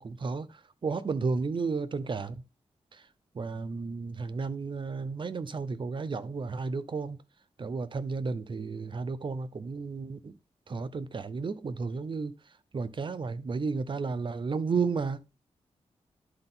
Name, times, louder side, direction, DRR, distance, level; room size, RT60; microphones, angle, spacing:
voice 1, 0.0-2.4 2.9-3.0 3.3-7.2 7.6-10.3 10.7-12.3 12.7-15.4, right 4 dB, 45° right, 0.8 m, -33 dB
11.0 x 3.9 x 4.0 m
wide cardioid pair, 85°, 11 cm